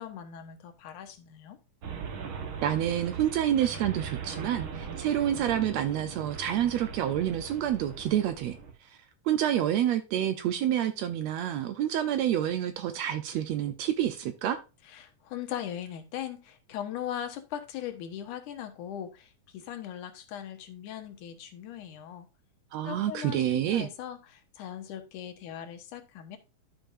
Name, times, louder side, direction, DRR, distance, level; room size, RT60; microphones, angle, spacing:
voice 1, 0.0-1.6 14.9-22.3 22.8-26.4, left 10 dB, 80° left, 2.6 m, -39 dB
sound 1, 1.8-8.7, right 6 dB, 55° right, 1.6 m, -40 dB
voice 2, 2.6-8.6 8.8-9.0 9.2-14.6 22.7-23.9, right 11 dB, 75° right, 1.7 m, -28 dB
12.5 x 5.2 x 2.5 m
omnidirectional pair, 3.5 m